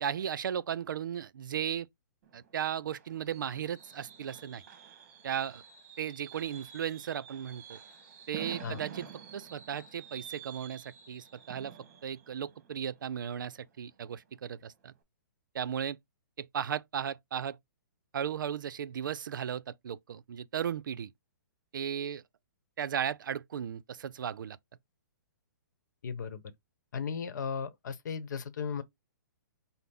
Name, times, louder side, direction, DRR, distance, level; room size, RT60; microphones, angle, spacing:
voice 1, 0.0-1.9 2.3-4.6 5.2-5.6 6.0-7.8 8.3-9.0 9.3-11.7 12.0-14.9 15.5-16.0 16.4-17.6 18.1-21.1 21.7-22.2 22.8-24.6, right 9 dB, 75° right, 0.4 m, -36 dB
Fireworks, 2.2-13.9 14.3-14.6 14.8-14.9, right 8 dB, 40° right, 1.1 m, -49 dB
voice 2, 26.0-26.4 26.9-28.8, left 6 dB, 65° left, 0.9 m, -36 dB
5.8 x 2.0 x 3.5 m
hypercardioid pair, 160°, 11 cm